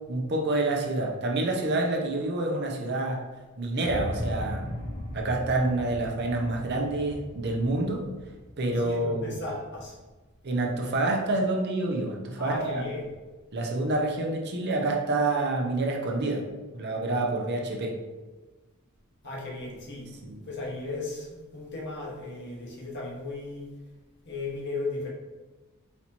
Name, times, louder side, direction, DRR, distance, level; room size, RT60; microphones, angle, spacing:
voice 1, 0.1-3.2 3.6-4.7 5.1-8.0 8.6-9.4 10.4-12.8 13.5-16.4 16.7-17.9 20.2-20.4, right 2 dB, 50° right, 0 dB, 0.7 m, -27 dB
sound 1, 3.8-9.9, left 1 dB, 30° left, 0.8 m, -37 dB
voice 2, 8.8-10.0 12.4-13.1 19.2-20.1 20.4-23.7 24.2-25.1, left 2 dB, 50° left, -3 dB, 1.3 m, -36 dB
4.2 x 2.9 x 4.3 m, 1.2 s
head